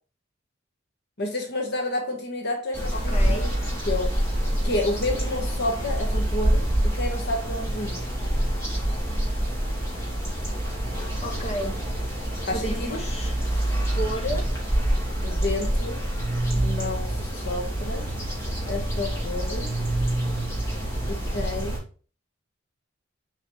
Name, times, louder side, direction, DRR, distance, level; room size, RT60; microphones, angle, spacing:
voice 1, 1.2-3.5 3.8-4.1 4.6-8.1 12.5-13.0 15.2-16.0 16.4-18.1 18.7-19.7 21.1-21.8, left 2 dB, 55° left, 2 dB, 1.5 m, -30 dB
sound 1, 2.7-21.8, right 1 dB, 15° left, 2.6 m, -26 dB
voice 2, 2.9-3.5 11.2-11.8 12.5-13.3 13.9-14.5, equal, 35° left, 0 dB, 1.7 m, -32 dB
6.9 x 4.9 x 3.3 m, 0.38 s
head